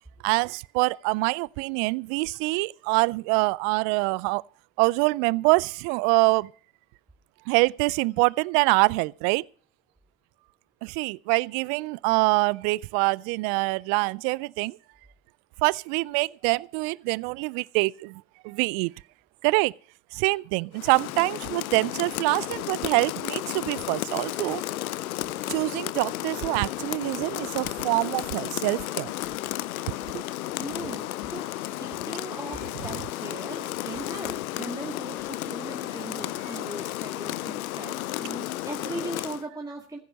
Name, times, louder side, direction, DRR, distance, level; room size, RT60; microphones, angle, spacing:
voice 1, 0.2-4.4 4.8-6.5 7.5-9.4 10.8-14.8 15.6-18.9 19.4-19.7 20.1-24.6 25.5-29.1 29.9-30.2, right 26 dB, 65° right, 0.5 m, -25 dB
Rain, 20.7-39.5, left 15 dB, 85° left, 0.6 m, -33 dB
voice 2, 30.6-40.0, right 2 dB, 10° right, 1.8 m, -39 dB
15.0 x 8.4 x 6.3 m
hypercardioid pair, 55°, 41 cm